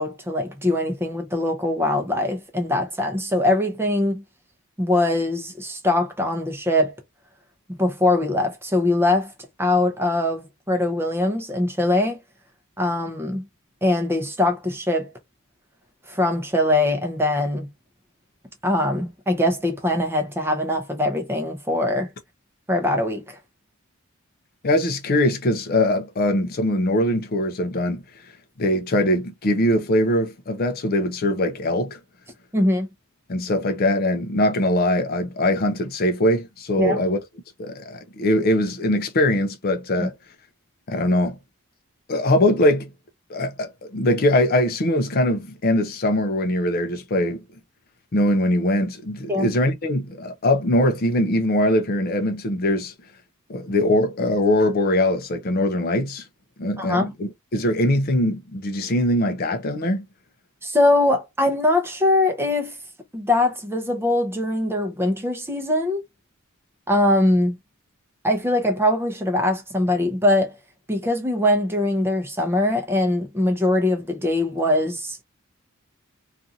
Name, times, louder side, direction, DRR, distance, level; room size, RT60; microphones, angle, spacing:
voice 1, 0.0-4.2 4.8-6.9 7.8-9.3 9.6-12.2 12.8-13.4 13.8-15.1 16.1-17.7 18.6-22.1 22.7-23.4 32.5-32.9 36.8-37.0 40.0-40.1 49.3-49.5 56.8-57.1 60.6-62.8 63.1-66.0 66.9-67.6 68.2-70.5 70.9-75.2, left 1 dB, 10° right, 0.6 m, -22 dB
voice 2, 24.6-28.0 28.6-32.0 33.3-37.2 37.6-40.2 40.9-41.4 42.1-42.9 43.3-47.4 48.1-52.9 53.5-56.2 56.6-60.0, left 1 dB, 45° left, 0.5 m, -22 dB
2.5 x 2.5 x 2.7 m
head